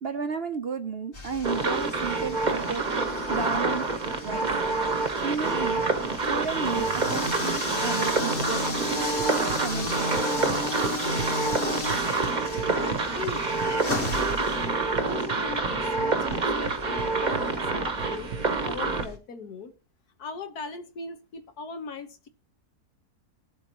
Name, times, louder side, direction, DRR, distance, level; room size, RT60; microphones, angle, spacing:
voice 1, 0.0-2.8 3.3-3.9 4.2-4.5 5.2-5.8 6.2-10.2, right 5 dB, 50° right, 9 dB, 0.8 m, -33 dB
sound 1, 1.1-19.2, left 2 dB, 50° left, 2.7 m, -35 dB
sound 2, 1.4-19.0, right 3 dB, 30° right, 1.0 m, -27 dB
sound 3, 9.2-11.6 11.9-13.7 14.0-15.0 15.3-16.4 16.6-17.1 17.3-19.1, right 7 dB, 70° right, 1.3 m, -37 dB
voice 2, 11.5-12.2 12.7-18.3 18.6-19.7 20.2-22.3, left 4 dB, 70° left, 6 dB, 1.7 m, -40 dB
20.5 x 8.0 x 3.0 m, 0.32 s
omnidirectional pair, 1.8 m